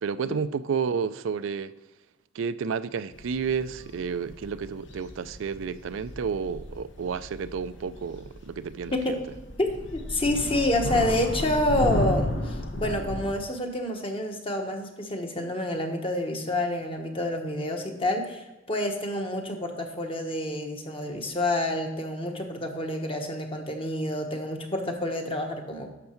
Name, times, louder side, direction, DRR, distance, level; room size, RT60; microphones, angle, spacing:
voice 1, 0.0-1.7 2.3-9.2, right 6 dB, 85° right, 0.4 m, -31 dB
sound 1, 3.1-13.3, left 1 dB, 65° left, 1.1 m, -34 dB
voice 2, 8.9-9.2 9.6-25.9, left 1 dB, 30° left, 1.2 m, -28 dB
11.0 x 6.7 x 4.5 m
head